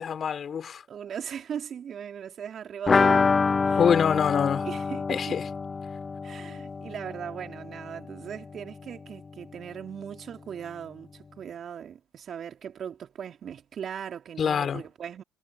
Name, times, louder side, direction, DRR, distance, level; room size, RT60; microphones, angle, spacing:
voice 1, 0.0-0.8 3.7-4.7 5.1-5.4 14.4-14.8, left 7 dB, 50° left, 3.2 m, -25 dB
voice 2, 0.9-3.9 4.6-5.4 6.2-15.2, right 8 dB, 50° right, 3.3 m, -39 dB
sound 1, 2.9-8.5 8.7-8.8 9.1-9.2, left 4 dB, 35° left, 0.3 m, -26 dB
hypercardioid pair, 55°, 0 cm